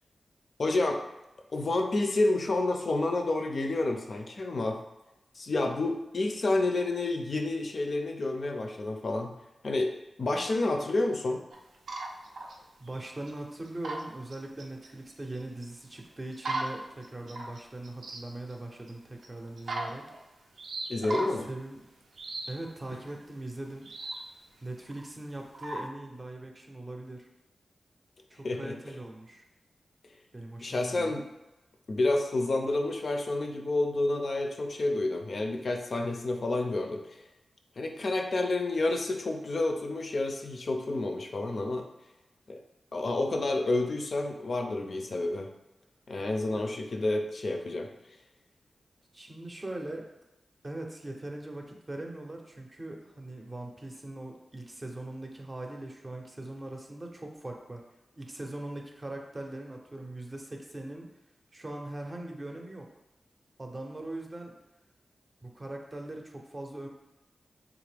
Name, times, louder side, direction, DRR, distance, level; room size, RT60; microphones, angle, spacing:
voice 1, 0.6-1.0 1.5-4.8 5.4-9.3 9.6-9.9 10.2-11.4 20.9-21.5 28.4-28.7 30.6-31.3 31.9-37.0 37.8-41.8 42.5-42.6 42.9-45.5 46.1-47.9, left 2 dB, 60° left, 4 dB, 0.4 m, -29 dB
sound 1, 11.5-14.0 14.3-15.7 16.3-18.2 18.5-18.6 18.9-19.0 19.2-19.3 19.6-20.2 20.6-21.4 22.2-22.5 23.0-23.2 23.7-24.2 24.8-25.0 25.5-25.9, right 2 dB, 90° right, 0.5 m, -37 dB
voice 2, 12.8-20.0 21.5-21.8 22.5-23.9 24.6-27.3 28.3-29.4 30.3-31.1 46.5-46.7 49.1-50.0 50.6-57.8 58.1-61.1 61.5-62.9 63.6-64.5 65.4-66.9, right 1 dB, 30° right, 2 dB, 0.5 m, -41 dB
3.5 x 2.4 x 3.3 m, 0.95 s
wide cardioid pair, 80°, 0 cm